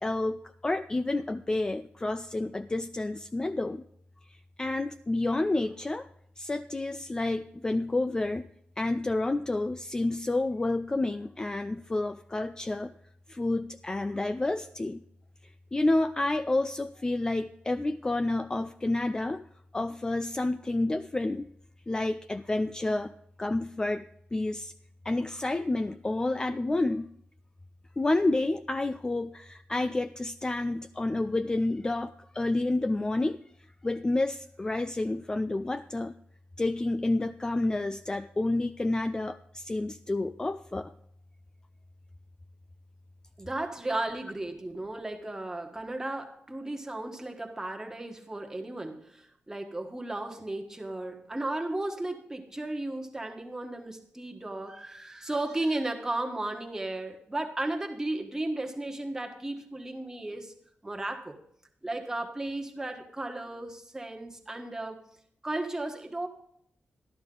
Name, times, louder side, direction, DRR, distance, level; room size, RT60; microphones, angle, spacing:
voice 1, 0.0-3.8 4.3-6.1 6.4-8.5 8.8-12.9 13.3-15.0 15.4-19.5 19.7-21.5 21.9-24.7 25.0-27.1 28.0-33.4 33.8-36.1 36.6-40.9, left 2 dB, 20° left, 10 dB, 0.3 m, -29 dB
voice 2, 43.4-60.5 60.8-61.4 61.8-65.1 65.4-66.3, right 2 dB, 15° right, 3 dB, 1.4 m, -35 dB
13.0 x 11.5 x 3.8 m, 0.70 s
wide cardioid pair, 120°, 4 cm